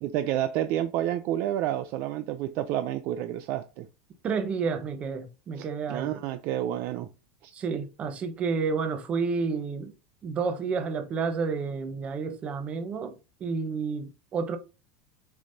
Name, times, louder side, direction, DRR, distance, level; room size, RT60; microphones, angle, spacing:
voice 1, 0.0-3.9 5.5-7.1 7.4-7.5, right 12 dB, 45° right, 0.5 m, -30 dB
voice 2, 4.2-6.2 7.5-9.9 10.2-14.6, right 5 dB, 25° right, 0.9 m, -30 dB
6.8 x 5.2 x 2.7 m
supercardioid pair, 165°, 5 cm